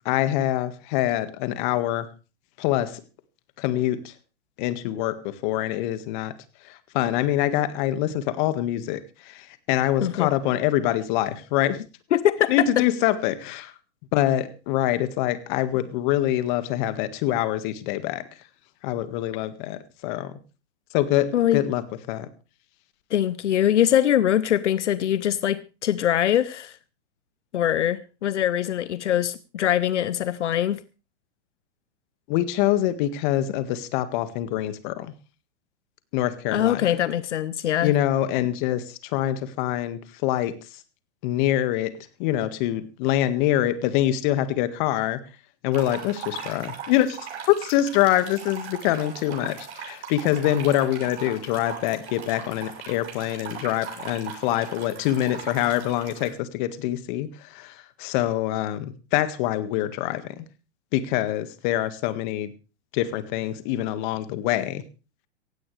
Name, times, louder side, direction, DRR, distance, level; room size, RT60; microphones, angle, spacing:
voice 1, 0.1-2.1 2.6-3.0 3.6-4.1 4.6-6.3 6.7-9.0 9.3-11.8 12.5-13.7 14.1-18.2 18.8-20.3 20.9-21.8 22.1-22.3 32.3-35.1 36.1-36.9 37.8-40.5 41.2-41.9 42.2-45.2 45.6-47.2 47.5-60.5 60.9-62.5 62.9-64.8, left 13 dB, 45° left, 1.8 m, -25 dB
voice 2, 10.0-10.3 12.1-12.8 21.3-21.6 23.1-26.8 27.5-30.8 36.5-37.9, left 11 dB, 85° left, 0.8 m, -23 dB
sound 1, 45.7-56.3, right 7 dB, 65° right, 7.1 m, -39 dB
16.5 x 16.5 x 3.3 m
hypercardioid pair, 130°, 34 cm